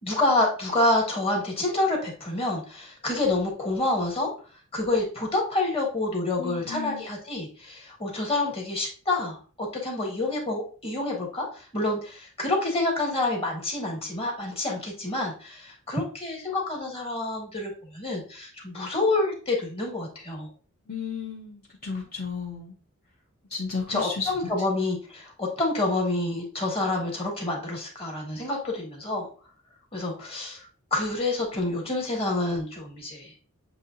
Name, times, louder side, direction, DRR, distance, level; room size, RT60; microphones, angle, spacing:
voice 1, 0.0-4.3 4.7-20.5 23.9-29.3 29.9-33.3, left 2 dB, 25° left, -1 dB, 1.5 m, -28 dB
voice 2, 6.4-7.0 20.9-22.7 23.5-24.3, left 5 dB, 45° left, -3 dB, 0.8 m, -33 dB
7.3 x 2.8 x 2.6 m, 0.38 s
head